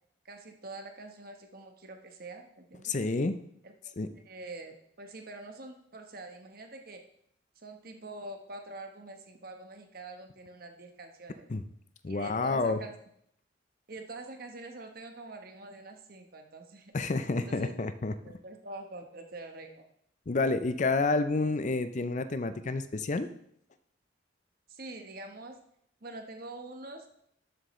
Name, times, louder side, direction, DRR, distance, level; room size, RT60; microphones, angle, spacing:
voice 1, 0.2-2.9 3.6-3.9 4.3-7.0 7.6-11.5 12.1-12.9 13.9-16.9 17.5-17.8 18.2-19.9 24.7-25.6 26.0-27.2, right 2 dB, 50° right, 4 dB, 1.2 m, -45 dB
voice 2, 2.8-3.4 4.0-4.1 11.5-11.6 12.0-12.8 16.9-18.1 20.3-23.3, left 3 dB, 40° left, 12 dB, 0.5 m, -29 dB
12.5 x 7.5 x 3.2 m, 0.70 s
head